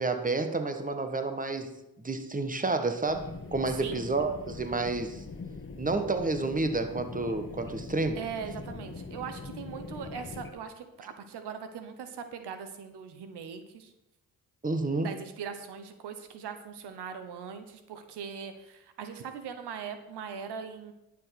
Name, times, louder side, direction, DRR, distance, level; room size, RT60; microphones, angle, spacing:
voice 1, 0.0-5.2 5.8-8.2 14.6-15.1, right 3 dB, 20° right, 8 dB, 1.6 m, -30 dB
sound 1, 3.1-10.5, left 3 dB, 30° left, 1.5 m, -42 dB
voice 2, 8.2-13.9 15.0-20.9, right 7 dB, 85° right, 9 dB, 1.2 m, -40 dB
11.0 x 7.3 x 6.0 m, 0.91 s
cardioid pair, 65°, 39 cm